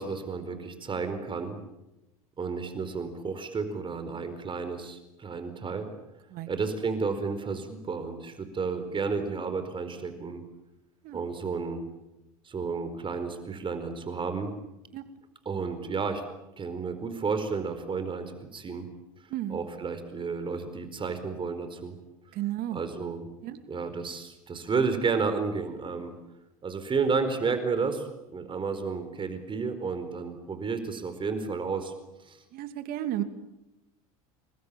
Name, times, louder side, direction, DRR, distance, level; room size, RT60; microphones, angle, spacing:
voice 1, 0.0-1.6 2.4-5.9 6.5-10.4 11.1-11.8 12.4-14.5 15.4-16.2 16.6-18.9 19.5-21.9 22.7-23.3 23.7-26.2 26.6-31.9 32.3-32.4, right 5 dB, 25° right, 10 dB, 4.6 m, -31 dB
voice 2, 19.3-19.6 22.3-22.8 23.4-23.6 32.5-33.2, right 13 dB, 55° right, 10 dB, 2.7 m, -33 dB
29.0 x 21.5 x 8.9 m, 0.93 s
hypercardioid pair, 80°, 18 cm